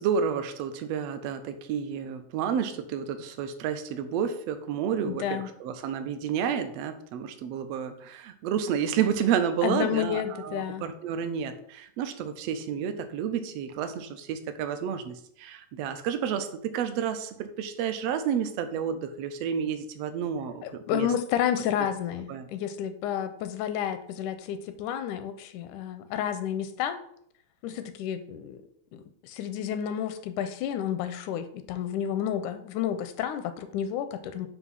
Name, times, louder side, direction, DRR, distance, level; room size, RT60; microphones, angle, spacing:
voice 1, 0.0-21.1 22.3-22.5, right 8 dB, 80° right, 8 dB, 1.4 m, -30 dB
voice 2, 5.0-5.5 9.6-10.8 20.6-27.0 27.6-28.6 28.9-34.5, left 9 dB, 85° left, 10 dB, 2.0 m, -31 dB
7.9 x 2.7 x 5.6 m, 0.68 s
omnidirectional pair, 3.5 m